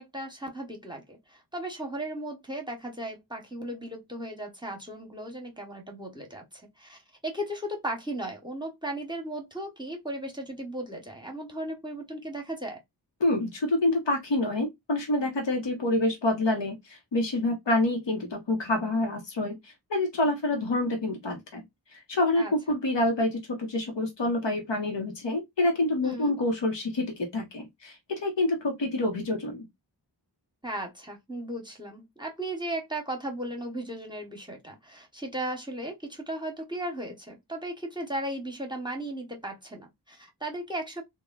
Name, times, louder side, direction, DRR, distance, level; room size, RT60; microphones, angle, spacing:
voice 1, 0.0-12.8 22.4-22.8 26.0-26.3 30.6-41.0, right 1 dB, 10° right, 0.9 m, -36 dB
voice 2, 13.2-21.6 21.9-29.7, left 2 dB, 90° left, 0.9 m, -27 dB
3.0 x 2.2 x 2.3 m
wide cardioid pair, 55°, 42 cm